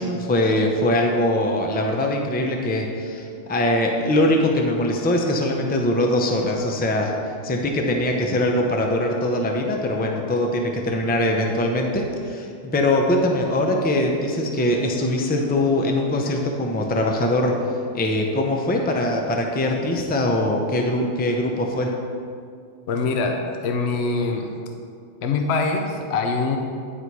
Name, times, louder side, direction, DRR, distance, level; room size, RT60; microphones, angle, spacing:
voice 1, 0.0-7.1 7.4-17.5 17.9-21.9, left 1 dB, 15° left, 1 dB, 0.4 m, -22 dB
voice 2, 22.9-24.5 25.2-26.6, left 3 dB, 65° left, 4 dB, 0.8 m, -23 dB
9.5 x 4.2 x 4.7 m, 2.4 s
omnidirectional pair, 1.3 m